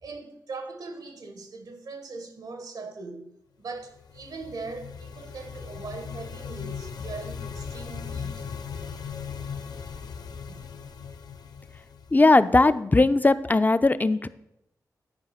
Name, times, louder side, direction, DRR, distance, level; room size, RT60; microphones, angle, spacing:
voice 1, 0.0-8.4 10.5-10.7, right 3 dB, 80° right, 1.3 m, -40 dB
sound 1, 3.9-12.6, left 6 dB, 75° left, 0.6 m, -38 dB
voice 2, 12.1-14.3, left 2 dB, 25° left, 0.5 m, -19 dB
9.7 x 4.7 x 5.8 m
cardioid pair, 45°, 7 cm